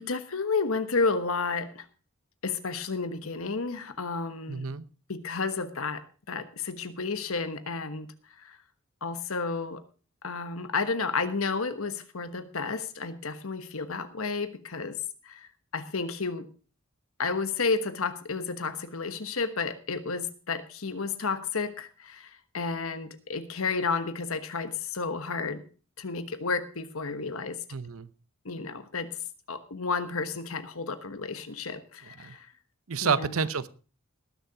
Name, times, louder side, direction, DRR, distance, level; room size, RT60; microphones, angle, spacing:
voice 1, 0.0-1.8 2.4-4.7 5.1-6.0 6.3-8.1 8.4-8.6 9.0-9.8 10.2-15.0 15.2-16.5 17.2-25.6 26.0-27.6 28.4-29.1 29.5-32.5 33.0-33.4, left 4 dB, 90° left, 10 dB, 1.3 m, -31 dB
voice 2, 4.5-4.9 27.7-28.1 32.2-32.3 32.9-33.7, right 5 dB, 90° right, 15 dB, 0.8 m, -29 dB
19.5 x 6.9 x 4.8 m, 0.37 s
head